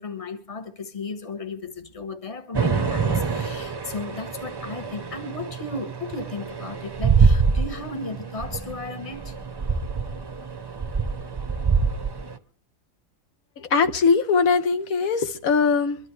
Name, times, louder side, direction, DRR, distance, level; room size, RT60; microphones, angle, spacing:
voice 1, 0.0-9.4, left 3 dB, 25° left, 1.3 m, -35 dB
sound 1, 2.5-12.4, right 5 dB, 25° right, 0.6 m, -25 dB
voice 2, 13.6-16.0, left 5 dB, 80° left, 1.5 m, -21 dB
24.0 x 12.0 x 3.2 m
omnidirectional pair, 1.5 m